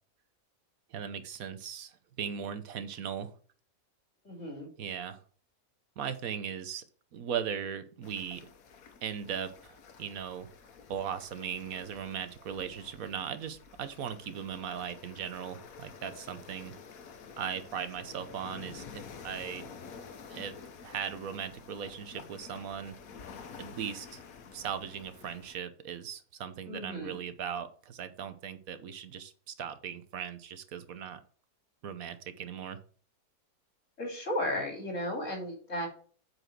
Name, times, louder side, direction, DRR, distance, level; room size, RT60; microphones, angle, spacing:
voice 1, 0.9-3.3 4.8-5.2 6.0-6.8 7.1-8.4 9.0-10.5 10.9-16.7 17.4-19.7 20.3-20.5 20.8-23.0 23.6-24.2 24.5-31.2 31.8-32.8, right 8 dB, 75° right, 11 dB, 1.3 m, -38 dB
voice 2, 4.2-4.7 26.7-27.2 34.0-35.9, left 1 dB, 60° left, 2 dB, 3.2 m, -34 dB
sound 1, 8.0-25.6, left 6 dB, 80° left, 1.5 m, -50 dB
7.9 x 4.7 x 5.9 m, 0.43 s
omnidirectional pair, 1.5 m